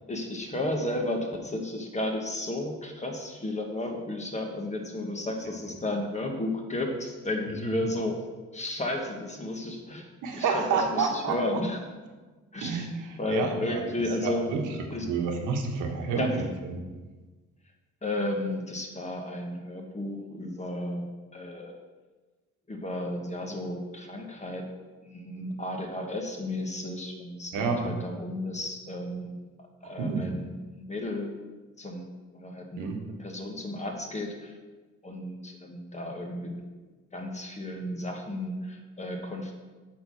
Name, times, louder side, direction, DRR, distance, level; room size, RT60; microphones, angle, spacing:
voice 1, 0.1-8.3 8.5-10.1 10.3-11.8 12.5-12.9 13.2-14.5 14.9-15.1 16.2-16.4 18.0-21.8 22.7-24.7 25.0-29.4 29.8-31.3 31.8-32.9 33.2-34.5 35.0-36.6 37.1-39.5, left 1 dB, 25° left, 2 dB, 1.4 m, -33 dB
voice 2, 10.2-11.4 12.6-12.9 13.3-13.8 14.2-14.6 15.0-16.4 16.7-16.8 27.5-27.9 30.0-30.3 32.8-33.0, right 5 dB, 85° right, 3 dB, 1.2 m, -28 dB
7.8 x 3.9 x 6.4 m, 1.3 s
cardioid pair, 90°, 30 cm